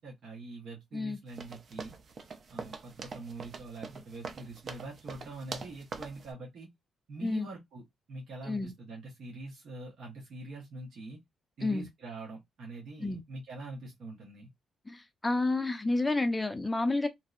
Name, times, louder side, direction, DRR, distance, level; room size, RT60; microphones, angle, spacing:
voice 1, 0.0-1.9 2.5-6.7 7.1-7.8 8.1-11.2 11.6-14.5, right 2 dB, 65° right, 0.9 m, -44 dB
sound 1, 1.3-6.3, right 4 dB, 50° right, 0.4 m, -43 dB
voice 2, 14.9-17.1, left 2 dB, 15° left, 0.5 m, -30 dB
2.6 x 2.0 x 2.4 m
cardioid pair, 95°, 0 cm